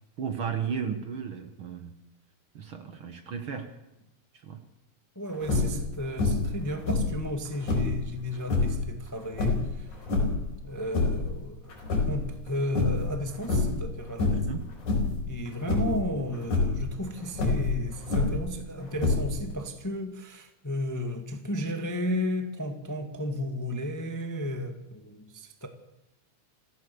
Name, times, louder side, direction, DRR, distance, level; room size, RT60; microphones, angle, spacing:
voice 1, 0.2-2.0 2.5-3.7 4.3-4.6 14.2-14.7, right 7 dB, 50° right, 1.9 m, -34 dB
voice 2, 5.1-9.9 10.6-11.7 12.1-14.4 15.3-25.7, left 1 dB, 10° left, 1.2 m, -33 dB
sound 1, 5.4-5.8 6.2-6.6 6.8-8.0 8.4-8.8 9.3-10.5 10.8-11.3 11.7-12.5 12.8-13.1 13.4-13.8 14.2-14.5 14.8-15.2 15.7-16.0 16.4-16.8 17.3-18.5 19.0-19.5, left 3 dB, 80° left, 6.1 m, -26 dB
24.5 x 15.5 x 7.0 m
omnidirectional pair, 3.4 m